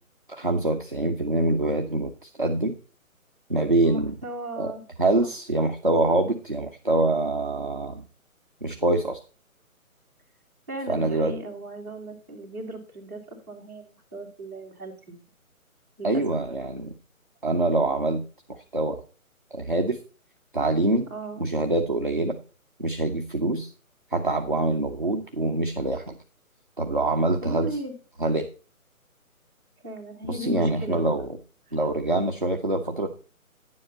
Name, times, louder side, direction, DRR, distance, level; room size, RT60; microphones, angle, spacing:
voice 1, 0.3-2.8 3.5-4.1 4.6-4.7 5.0-8.0 8.6-9.2 10.9-11.4 16.0-16.9 17.4-18.2 18.5-19.0 19.5-20.0 20.5-21.1 21.4-22.4 22.8-23.7 24.1-26.2 26.8-27.7 28.2-28.5 30.3-31.3 31.7-33.1, right 2 dB, 35° right, 3 dB, 0.6 m, -25 dB
voice 2, 3.8-4.8 5.2-5.3 10.7-15.2 16.0-16.4 21.1-21.4 27.4-27.9 29.8-31.1 31.7-31.8, right 1 dB, 15° right, -7 dB, 1.8 m, -37 dB
10.0 x 7.6 x 4.1 m, 0.35 s
hypercardioid pair, 180°, 43 cm